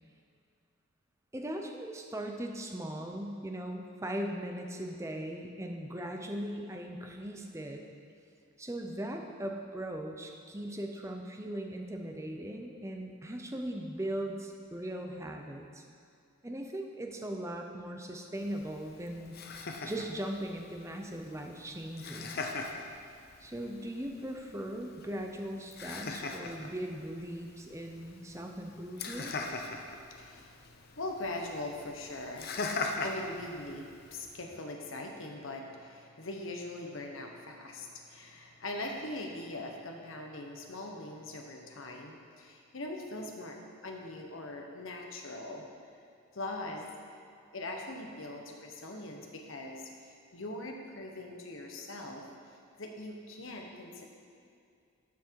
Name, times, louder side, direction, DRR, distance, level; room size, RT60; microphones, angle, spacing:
voice 1, 1.3-7.8 8.6-15.8 16.4-19.4 19.8-22.5 23.4-29.3, right 1 dB, 15° right, 3 dB, 0.6 m, -39 dB
Laughter, 18.3-34.3, left 3 dB, 45° left, 0.6 m, -42 dB
voice 2, 29.8-43.6 43.8-45.7 46.3-46.9 47.5-52.2 52.8-54.0, left 2 dB, 65° left, 1 dB, 1.2 m, -41 dB
12.0 x 6.0 x 4.7 m, 2.4 s
head